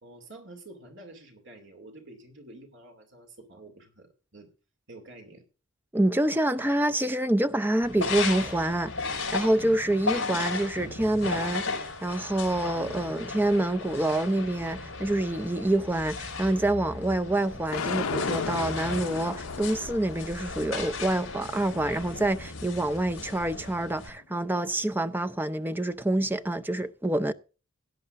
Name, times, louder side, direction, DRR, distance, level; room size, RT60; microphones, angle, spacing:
voice 1, 0.0-4.5 4.9-5.4 12.7-13.1 15.5-15.9, right 2 dB, 55° right, 2.5 m, -49 dB
voice 2, 5.9-27.3, right 1 dB, 10° right, 0.5 m, -27 dB
sound 1, 7.8-24.1, left 4 dB, 55° left, 5.2 m, -36 dB
sound 2, 17.7-23.9, left 5 dB, 75° left, 0.8 m, -36 dB
17.0 x 10.5 x 2.5 m
head